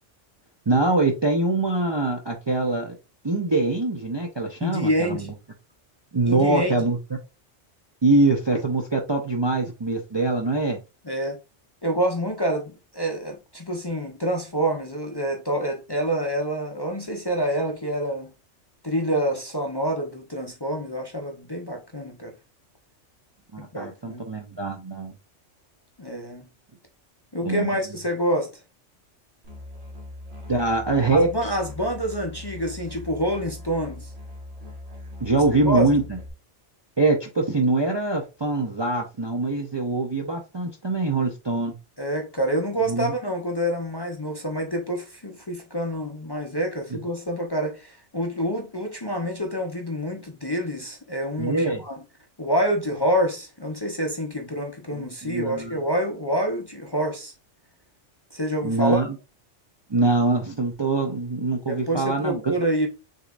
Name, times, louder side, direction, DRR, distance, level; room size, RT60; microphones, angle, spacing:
voice 1, 0.7-3.0 3.2-5.3 6.1-7.0 8.0-10.8 23.5-25.1 27.4-27.7 30.5-31.5 35.2-36.2 37.0-41.7 42.9-43.1 46.9-47.0 51.4-51.8 54.9-55.8 58.6-59.1 59.9-62.5, right 2 dB, 30° right, 0.5 m, -23 dB
voice 2, 4.6-5.3 6.2-6.9 11.0-11.4 11.8-18.3 18.8-22.3 23.6-24.3 26.0-26.4 27.3-28.5 31.1-34.1 35.6-35.9 42.0-52.0 52.4-57.3 58.3-59.0 61.7-62.9, equal, 25° left, 0.6 m, -27 dB
Musical instrument, 29.4-36.3, left 2 dB, 60° right, 1.9 m, -40 dB
6.5 x 3.1 x 2.4 m
omnidirectional pair, 1.2 m